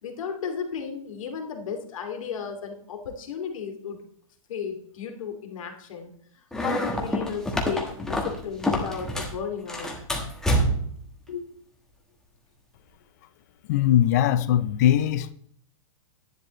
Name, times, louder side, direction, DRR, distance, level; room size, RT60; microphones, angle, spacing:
voice 1, 0.0-4.0 4.5-9.9 11.3-11.4, left 6 dB, 70° left, 2.7 m, -34 dB
sound 1, 6.5-9.4 9.7-11.0, equal, 5° left, 1.2 m, -27 dB
voice 2, 13.7-15.3, left 11 dB, 30° left, 0.5 m, -21 dB
12.0 x 10.5 x 3.2 m
hypercardioid pair, 170°, 18 cm